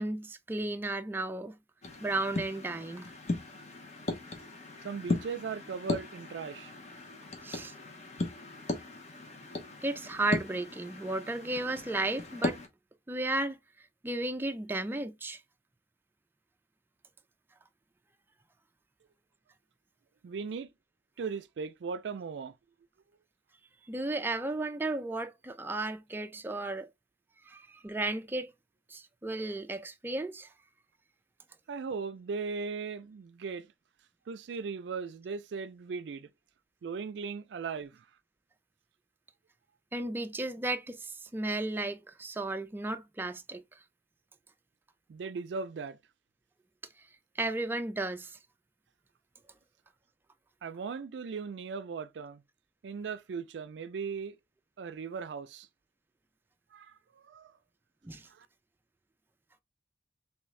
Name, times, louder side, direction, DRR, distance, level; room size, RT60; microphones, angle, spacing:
voice 1, 0.0-1.5 2.0-3.1 7.4-7.7 9.8-12.6 13.1-13.6 14.0-15.4 23.9-26.9 27.5-28.5 28.9-30.5 39.9-43.6 47.4-48.4 58.0-58.2, right 2 dB, 10° right, 0.3 m, -34 dB
sound 1, 1.8-12.7, left 2 dB, 40° left, 0.9 m, -37 dB
voice 2, 4.8-6.7 20.2-20.7 21.2-22.5 31.7-33.7 34.3-36.3 36.8-38.1 45.1-46.0 50.6-52.4 52.8-54.4 54.8-55.7 56.7-57.5 58.3-58.5, right 5 dB, 80° right, 0.4 m, -38 dB
3.5 x 3.2 x 3.1 m
head